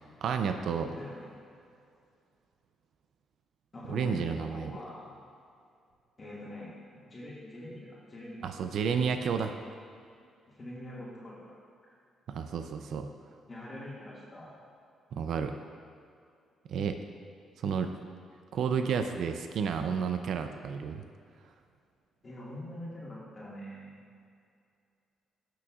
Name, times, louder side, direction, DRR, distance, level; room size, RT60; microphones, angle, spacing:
voice 1, 0.2-1.0 3.9-4.7 8.4-9.6 12.3-13.1 15.1-15.5 16.7-17.0 17.6-17.9 18.5-21.0, right 6 dB, 70° right, 7 dB, 0.5 m, -31 dB
voice 2, 0.9-1.3 3.7-5.2 6.2-8.5 10.5-11.5 11.8-12.0 13.5-14.5 22.2-24.0, left 1 dB, 30° left, -7 dB, 1.9 m, -44 dB
15.5 x 6.1 x 2.4 m, 2.4 s
cardioid pair, 90°, 0 cm